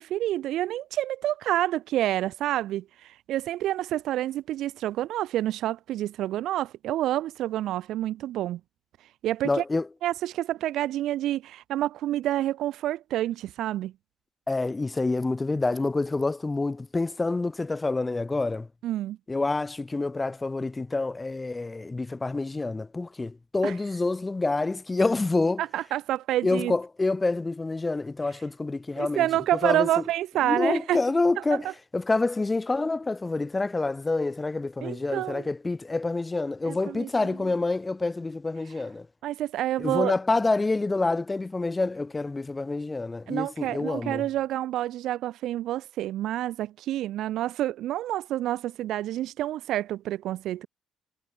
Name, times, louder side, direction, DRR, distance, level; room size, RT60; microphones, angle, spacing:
voice 1, 0.0-8.6 9.2-9.6 10.0-13.9 18.8-19.2 23.6-23.7 25.6-26.7 29.0-31.0 31.4-31.7 34.8-35.5 36.6-37.1 37.4-37.5 39.2-40.1 43.3-50.7, right 13 dB, 65° right, 0.5 m, -28 dB
voice 2, 9.4-9.9 14.5-18.7 19.3-25.6 26.4-29.3 29.6-29.9 30.4-31.7 31.9-39.1 39.8-44.2, left 3 dB, 25° left, 2.3 m, -27 dB
hypercardioid pair, 45°, 0 cm